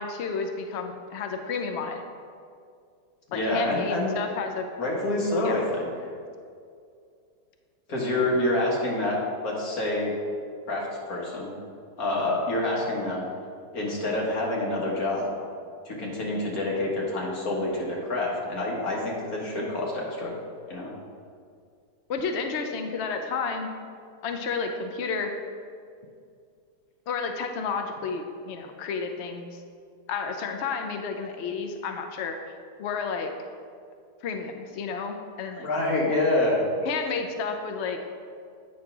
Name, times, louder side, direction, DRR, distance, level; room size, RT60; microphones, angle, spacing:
voice 1, 0.0-2.0 3.3-4.6 5.4-5.6 22.1-23.7 24.2-25.3 27.1-29.6 30.1-32.4 32.8-33.3 34.2-35.7 36.8-38.0, left 5 dB, 80° left, 5 dB, 0.6 m, -31 dB
voice 2, 3.3-4.1 4.8-5.9 7.9-10.1 10.7-11.6 12.0-13.3 13.7-15.3 15.9-20.3 20.7-20.9 35.6-36.6, left 2 dB, 60° left, -3 dB, 1.8 m, -27 dB
8.4 x 3.2 x 5.9 m, 2.3 s
omnidirectional pair, 1.9 m